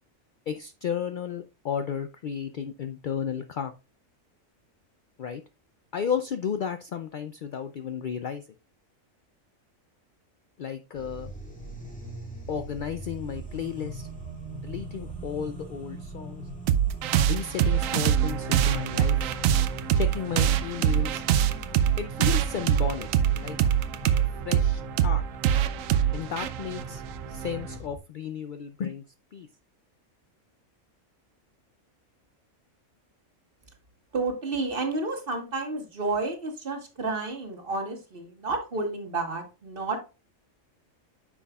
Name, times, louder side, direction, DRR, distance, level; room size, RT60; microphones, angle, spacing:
voice 1, 0.5-3.7 5.2-5.4 5.9-8.4 10.6-11.3 12.5-14.1 14.6-16.4 17.2-19.3 20.0-21.2 22.0-23.1 23.4-23.6 24.4-25.2 26.1-27.0 27.3-29.0 29.3-29.5, left 7 dB, 80° left, 9 dB, 0.4 m, -33 dB
sound 1, 10.9-28.0, right 1 dB, 5° left, 1.8 m, -41 dB
sound 2, 16.7-27.8, right 10 dB, 80° right, 1.0 m, -24 dB
voice 2, 34.1-40.0, right 3 dB, 45° right, 4 dB, 1.6 m, -31 dB
9.5 x 6.0 x 2.3 m, 0.30 s
omnidirectional pair, 1.4 m